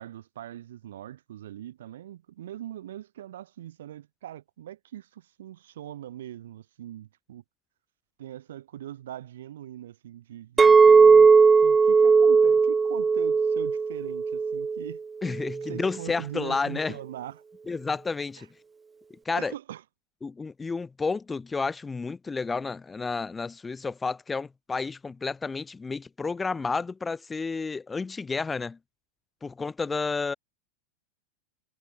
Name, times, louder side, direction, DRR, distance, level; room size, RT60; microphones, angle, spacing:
voice 1, 0.0-7.4 8.2-15.0 15.7-17.4 18.4-18.5 19.3-19.8, right 12 dB, 60° right, 3.8 m, -41 dB
Chink clink, 10.6-14.9 15.4-15.8, right 5 dB, 15° right, 0.9 m, -18 dB
voice 2, 15.2-17.0 17.7-18.5 19.2-19.5 20.2-28.8 29.4-30.3, left 4 dB, 15° left, 4.7 m, -31 dB
figure-of-eight pair, 90°, 0 cm